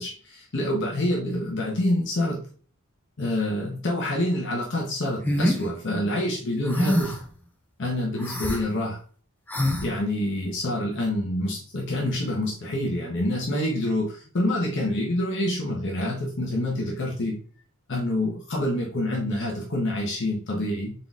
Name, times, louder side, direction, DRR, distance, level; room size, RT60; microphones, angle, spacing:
voice 1, 0.0-2.4 3.2-7.1 7.8-9.0 9.8-17.4 17.9-20.9, left 1 dB, 55° left, -2 dB, 0.8 m, -27 dB
sound 1, 5.2-5.6 6.7-7.2 8.2-8.6 9.5-9.9, equal, 5° left, 0.5 m, -24 dB
3.8 x 3.7 x 2.3 m, 0.44 s
head